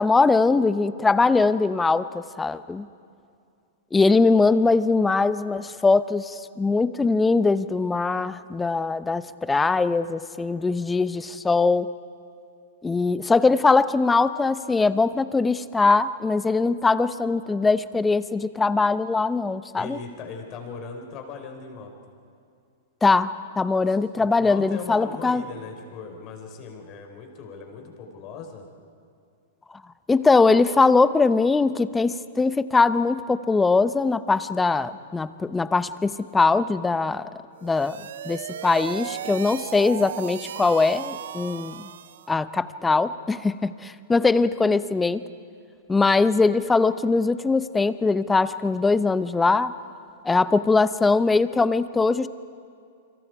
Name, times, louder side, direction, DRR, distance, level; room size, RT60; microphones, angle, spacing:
voice 1, 0.0-2.9 3.9-11.9 12.8-20.0 23.0-25.4 30.1-37.3 37.6-38.0 38.3-41.9 42.3-45.2 45.9-49.7 50.2-52.3, left 3 dB, 10° left, 14 dB, 0.8 m, -21 dB
voice 2, 19.7-21.9 23.9-28.7, left 5 dB, 40° left, 3 dB, 4.6 m, -39 dB
sound 1, 37.5-42.4, right 10 dB, 70° right, 0.6 m, -36 dB
28.5 x 25.5 x 4.8 m, 2.4 s
hypercardioid pair, 120°, 0 cm